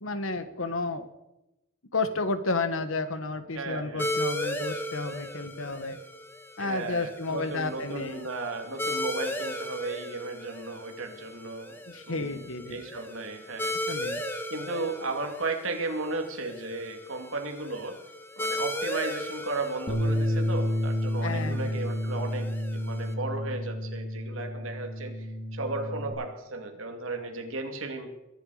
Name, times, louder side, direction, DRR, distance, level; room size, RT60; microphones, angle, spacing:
voice 1, 0.0-1.1 1.9-6.0 6.6-8.3 11.9-12.9 13.7-14.2 21.2-21.8, left 3 dB, 70° left, 10 dB, 1.4 m, -32 dB
voice 2, 3.5-4.1 6.6-11.8 12.1-12.4 12.7-13.7 14.5-18.0 18.4-28.1, right 3 dB, 75° right, 4 dB, 2.6 m, -35 dB
sound 1, 4.0-23.1, left 1 dB, 10° left, 1.3 m, -37 dB
Bass guitar, 19.9-26.1, equal, 30° left, 3.8 m, -30 dB
22.5 x 11.0 x 5.0 m, 0.96 s
head